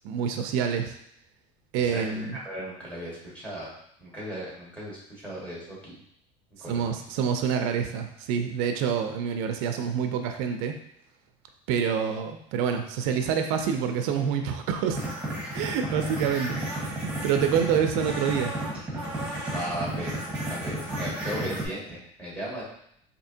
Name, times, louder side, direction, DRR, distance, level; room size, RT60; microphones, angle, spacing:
voice 1, 0.0-1.0 1.7-2.4 6.7-10.8 11.7-15.0 15.5-18.5, right 7 dB, 75° right, 6 dB, 0.4 m, -27 dB
voice 2, 1.8-3.7 4.0-5.9 6.6-6.9 19.5-22.6, equal, 10° left, -7 dB, 1.4 m, -36 dB
sound 1, 14.9-21.7, right 1 dB, 5° right, 1.2 m, -32 dB
4.3 x 2.7 x 2.7 m, 0.72 s
cardioid pair, 155°, 15 cm